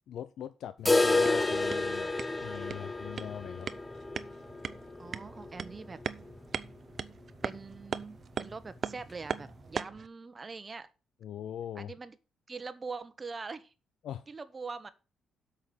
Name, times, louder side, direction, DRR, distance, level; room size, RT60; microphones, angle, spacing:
voice 1, 0.1-2.1 2.4-3.7 11.2-11.9 14.0-14.2, left 10 dB, 75° left, 0.5 m, -41 dB
sound 1, 0.9-6.7 7.0-7.1 7.4-7.5 8.0-8.1 9.0-9.1, left 2 dB, 15° left, 0.8 m, -30 dB
sound 2, 1.0-10.1, right 6 dB, 50° right, 0.7 m, -41 dB
voice 2, 5.0-6.0 7.4-10.9 11.7-12.2 12.5-13.7 14.3-14.9, right 4 dB, 30° right, 1.1 m, -43 dB
8.2 x 5.8 x 7.8 m
cardioid pair, 90°, 0 cm